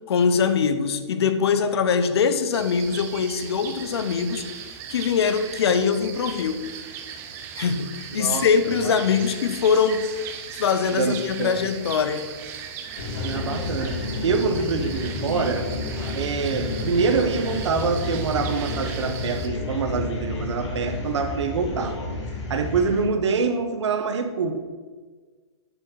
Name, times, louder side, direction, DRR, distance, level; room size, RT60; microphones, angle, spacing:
voice 1, 0.1-4.5 4.9-6.6 7.6-10.1 10.6-12.3, left 6 dB, 65° left, 11 dB, 0.9 m, -22 dB
sound 1, 2.5-19.5, right 7 dB, 15° right, 0.5 m, -38 dB
voice 2, 8.2-8.9 10.9-11.6 13.2-15.7 16.1-22.0 22.5-24.6, right 5 dB, 80° right, 6 dB, 1.3 m, -25 dB
sound 2, 13.0-23.1, left 2 dB, 85° left, 2.4 m, -31 dB
9.6 x 5.0 x 6.3 m, 1.4 s
hypercardioid pair, 165°, 15 cm